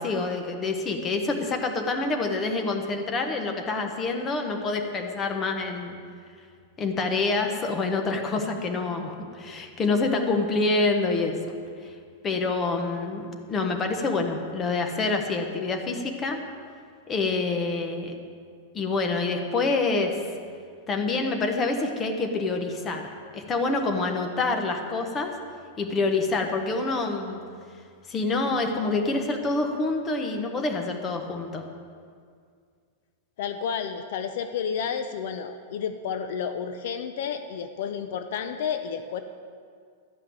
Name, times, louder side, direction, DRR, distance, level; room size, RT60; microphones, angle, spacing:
voice 1, 0.0-5.9 6.8-11.4 12.2-16.4 17.1-18.1 18.7-20.2 20.9-25.3 25.8-27.4 28.1-31.6, left 3 dB, 15° left, 4 dB, 0.9 m, -27 dB
voice 2, 33.4-39.2, left 7 dB, 50° left, 8 dB, 0.6 m, -31 dB
12.5 x 5.7 x 9.2 m, 2.2 s
supercardioid pair, 175°, 0 cm